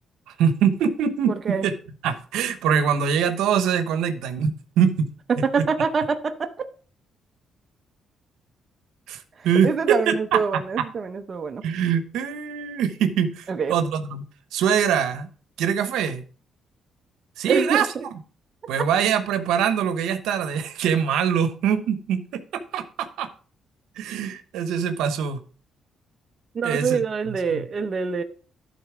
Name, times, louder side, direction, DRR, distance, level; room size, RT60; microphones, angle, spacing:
voice 1, 0.4-1.7 2.0-5.1 5.6-5.7 9.1-10.4 11.6-14.2 14.5-15.3 15.6-16.2 17.4-18.1 18.7-23.3 24.0-25.4 26.6-27.0 27.5-27.6, right 7 dB, 90° right, 0.9 m, -23 dB
voice 2, 5.3-6.7 9.6-11.6 13.5-13.7 17.5-18.0 26.5-28.2, right 5 dB, 45° right, 0.7 m, -25 dB
11.5 x 4.2 x 4.9 m
cardioid pair, 90°, 0 cm